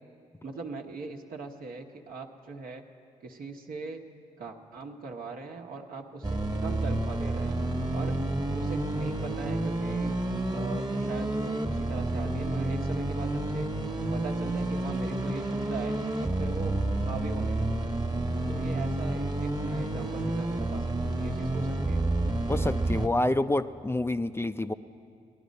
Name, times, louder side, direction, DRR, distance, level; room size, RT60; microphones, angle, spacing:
voice 1, 0.4-2.8 3.2-4.1 4.4-7.6 7.9-8.2 8.5-10.2 10.5-13.7 14.1-17.8 18.4-22.0, right 4 dB, 65° right, 3 dB, 1.1 m, -40 dB
sound 1, 6.2-23.1, right 2 dB, 25° right, 1.2 m, -29 dB
voice 2, 22.5-24.7, left 2 dB, 15° left, 11 dB, 0.4 m, -28 dB
18.0 x 11.5 x 5.3 m, 2.4 s
hypercardioid pair, 45°, 16 cm